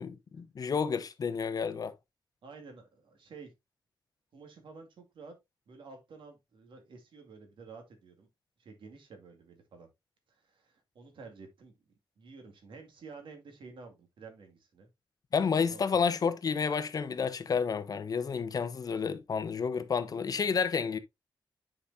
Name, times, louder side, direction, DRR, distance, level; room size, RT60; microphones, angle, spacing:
voice 1, 0.0-1.9 15.3-21.0, left 6 dB, 50° left, 0.8 m, -30 dB
voice 2, 2.4-3.5 4.3-5.3 5.7-8.3 8.6-9.9 10.3-11.8 12.2-14.9 15.6-15.9, right 4 dB, 85° right, 2.1 m, -51 dB
9.8 x 5.0 x 2.6 m
wide cardioid pair, 155°, 8 cm